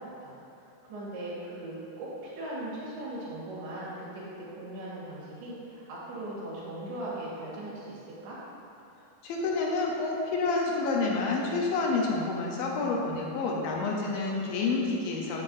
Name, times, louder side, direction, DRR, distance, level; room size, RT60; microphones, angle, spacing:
voice 1, 0.2-0.6 0.9-8.4, right 1 dB, 85° right, -7 dB, 4.1 m, -39 dB
voice 2, 9.2-15.4, left 3 dB, 75° left, -1 dB, 2.5 m, -29 dB
13.5 x 7.4 x 2.7 m, 2.7 s
omnidirectional pair, 4.4 m